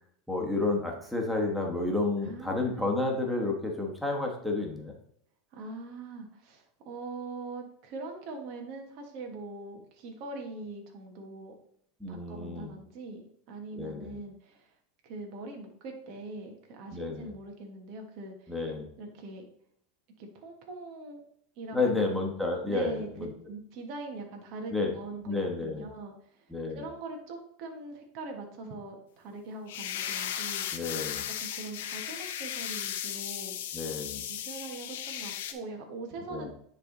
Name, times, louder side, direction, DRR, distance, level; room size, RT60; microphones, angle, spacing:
voice 1, 0.3-5.0 12.0-12.7 13.7-14.2 16.9-17.3 18.5-18.9 21.7-23.3 24.7-24.9 25.2-25.9 26.5-26.8 30.7-31.2 33.7-34.2 36.3-36.5, left 3 dB, ahead, 0 dB, 1.4 m, -31 dB
voice 2, 2.2-2.9 5.5-11.5 12.1-14.7 15.0-18.6 19.0-19.4 20.2-21.2 21.6-22.0 22.7-23.1 23.4-30.7 31.4-33.5 34.2-36.5, right 3 dB, 55° right, 2 dB, 1.4 m, -42 dB
sound 1, 29.7-35.5, left 10 dB, 80° left, 0.8 m, -36 dB
10.0 x 3.5 x 3.9 m, 0.69 s
supercardioid pair, 125°, 0 cm